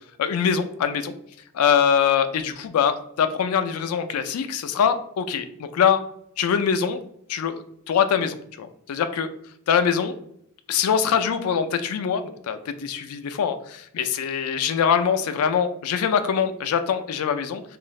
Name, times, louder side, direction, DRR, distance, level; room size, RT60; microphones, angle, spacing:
voice 1, 0.2-1.1 1.5-6.0 6.4-7.0 7.3-9.3 9.7-10.1 10.7-17.6, left 7 dB, 85° left, 10 dB, 0.3 m, -23 dB
2.6 x 2.4 x 3.0 m, 0.73 s
head